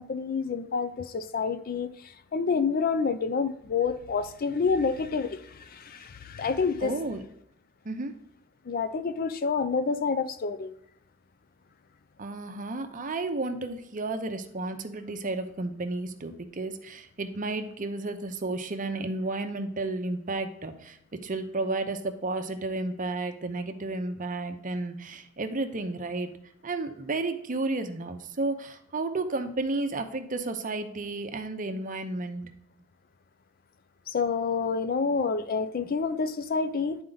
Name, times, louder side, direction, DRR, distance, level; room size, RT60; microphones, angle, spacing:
voice 1, 0.0-1.9 2.3-6.9 8.7-10.7 34.1-37.0, left 5 dB, 45° left, 11 dB, 0.5 m, -28 dB
voice 2, 6.8-7.2 7.8-8.1 12.2-26.3 26.6-32.5, right 2 dB, 40° right, 8 dB, 0.7 m, -32 dB
10.5 x 4.4 x 3.9 m, 0.74 s
head